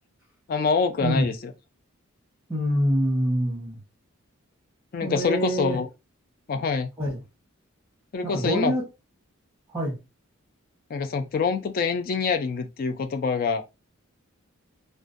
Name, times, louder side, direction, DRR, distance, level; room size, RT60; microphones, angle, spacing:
voice 1, 0.5-1.5 4.9-5.9 6.5-6.9 8.1-8.7 10.9-13.6, left 5 dB, 40° left, 0.3 m, -25 dB
voice 2, 2.5-3.8 5.0-5.8 7.0-7.2 8.2-8.8 9.7-10.0, equal, 10° right, 0.9 m, -25 dB
2.5 x 2.1 x 2.4 m
head